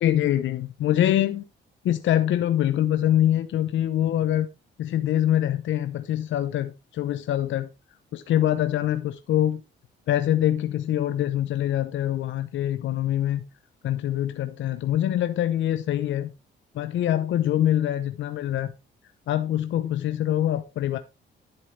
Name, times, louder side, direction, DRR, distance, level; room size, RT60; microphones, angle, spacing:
voice 1, 0.0-1.4 1.8-4.5 4.8-7.7 8.1-9.6 10.1-13.4 13.8-16.3 16.7-18.7 19.3-21.0, left 12 dB, 70° left, 0.9 m, -24 dB
11.0 x 7.7 x 3.3 m
cardioid pair, 90°, 20 cm